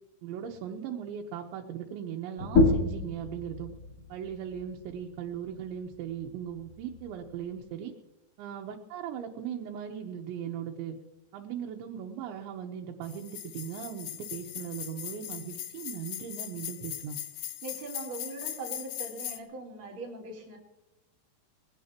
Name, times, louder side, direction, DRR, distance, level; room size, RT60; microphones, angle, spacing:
voice 1, 0.2-3.7 4.1-7.9 8.4-11.0 11.3-17.2, right 8 dB, 85° right, 0 dB, 3.5 m, -38 dB
sound 1, 2.4-7.6, left 2 dB, 35° left, 4.0 m, -30 dB
sound 2, 13.0-19.4, left 13 dB, 75° left, 2.4 m, -40 dB
voice 2, 17.6-20.6, right 3 dB, 30° right, -2 dB, 4.7 m, -41 dB
22.0 x 17.0 x 2.9 m, 0.94 s
omnidirectional pair, 5.1 m